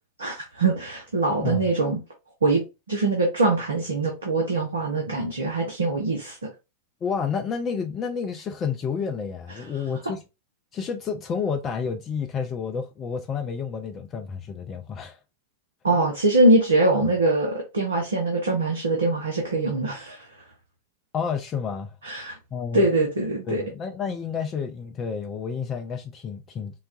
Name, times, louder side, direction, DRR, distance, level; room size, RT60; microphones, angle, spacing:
voice 1, 0.2-2.0 2.4-2.6 2.9-6.4 15.8-20.3 22.0-22.4 22.7-23.6, right 2 dB, 75° right, 0.7 m, -23 dB
voice 2, 7.0-10.2 10.7-15.2 16.9-17.0 21.1-21.9 22.5-22.9 23.5-26.9, left 6 dB, 25° left, 0.4 m, -30 dB
3.9 x 2.2 x 2.3 m
figure-of-eight pair, 90°, 0 cm